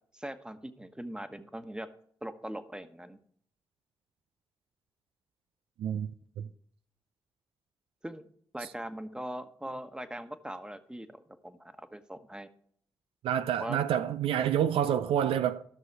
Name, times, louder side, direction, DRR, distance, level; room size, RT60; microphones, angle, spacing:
voice 1, 0.1-1.9 2.2-3.2 8.0-8.2 8.5-12.5 13.6-13.8, right 1 dB, 10° right, 1.2 m, -41 dB
voice 2, 5.8-6.1 6.4-6.5 8.6-8.7 13.2-15.6, right 9 dB, 80° right, 0.4 m, -28 dB
14.0 x 6.3 x 4.6 m
supercardioid pair, 40°, 9 cm